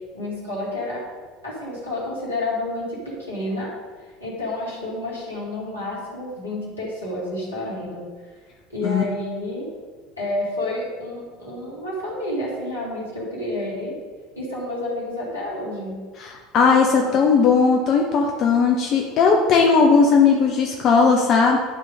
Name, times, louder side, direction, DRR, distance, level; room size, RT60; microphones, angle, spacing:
voice 1, 0.1-1.0 1.4-3.7 4.2-8.0 8.7-9.7 10.2-13.9 14.4-16.0, left 1 dB, 80° left, -6 dB, 2.6 m, -29 dB
voice 2, 16.2-21.6, left 5 dB, 45° left, 1 dB, 0.8 m, -17 dB
11.0 x 3.7 x 5.2 m, 1.5 s
figure-of-eight pair, 70°, 0 cm